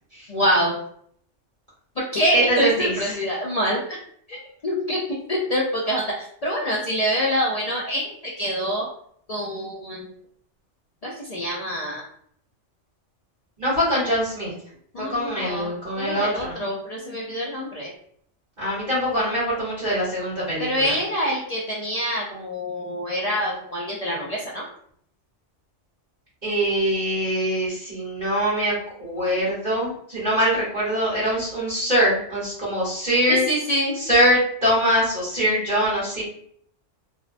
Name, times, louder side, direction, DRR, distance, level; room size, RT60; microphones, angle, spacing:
voice 1, 0.3-0.8 2.0-3.8 4.3-5.0 5.3-8.9 9.3-10.1 11.0-12.0 14.9-17.9 20.6-24.6 33.3-34.0, equal, 60° left, -4 dB, 0.4 m, -26 dB
voice 2, 2.3-3.2 13.6-14.5 15.0-16.6 18.6-20.9 26.4-33.5 34.0-36.2, equal, 40° right, -9 dB, 1.2 m, -23 dB
2.6 x 2.2 x 2.4 m, 0.63 s
omnidirectional pair, 1.2 m